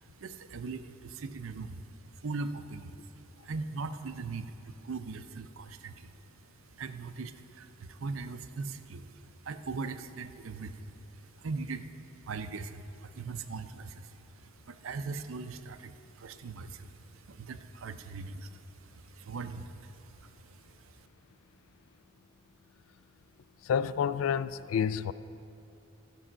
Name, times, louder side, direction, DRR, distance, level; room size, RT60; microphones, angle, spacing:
voice 1, 0.0-6.2 6.7-21.0, right 4 dB, 80° right, 0.5 m, -41 dB
voice 2, 23.6-25.1, left 7 dB, 85° left, 0.3 m, -29 dB
13.5 x 5.5 x 6.2 m
head